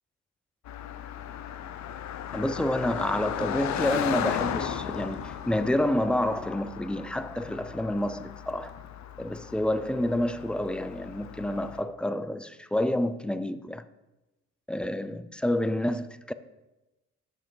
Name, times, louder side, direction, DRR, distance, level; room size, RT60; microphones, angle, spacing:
Car passing by, 0.7-11.8, left 9 dB, 65° left, 0.6 m, -36 dB
voice 1, 2.3-8.8 9.2-13.8 14.7-16.3, left 1 dB, 5° left, 0.3 m, -29 dB
7.3 x 5.7 x 4.9 m
cardioid pair, 90°, 30 cm